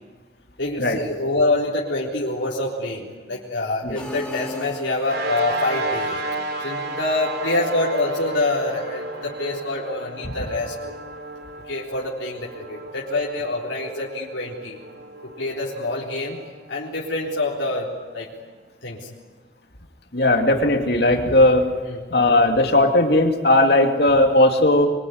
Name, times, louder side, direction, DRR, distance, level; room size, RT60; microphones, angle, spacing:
voice 1, 0.6-6.2 6.6-10.9 11.7-14.8 15.2-16.4 16.7-17.9 18.1-18.3 18.8-19.1 21.9-22.0, left 2 dB, 85° left, -4 dB, 3.8 m, -26 dB
sound 1, 4.0-5.5, left 1 dB, 5° left, 4.9 m, -35 dB
sound 2, 5.0-17.7, right 1 dB, 60° right, 3.4 m, -32 dB
voice 2, 20.1-21.6 22.1-24.9, left 1 dB, 60° left, 4 dB, 2.7 m, -17 dB
25.0 x 24.0 x 9.6 m, 1.4 s
head